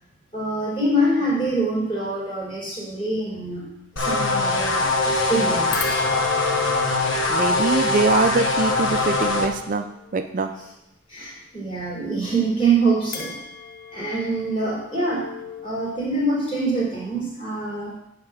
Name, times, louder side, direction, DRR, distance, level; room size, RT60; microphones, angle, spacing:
voice 1, 0.3-3.6 4.0-6.0 11.1-13.3 13.9-15.2 15.6-17.9, right 2 dB, 30° left, -7 dB, 3.7 m, -25 dB
sound 1, 4.0-9.5, left 2 dB, 80° left, 1.0 m, -22 dB
sound 2, 5.7-10.2 13.1-15.7, left 6 dB, 50° left, 0.9 m, -35 dB
voice 2, 7.3-9.9 10.1-10.5, right 4 dB, 45° right, 8 dB, 0.4 m, -23 dB
9.7 x 3.8 x 6.4 m, 0.85 s
head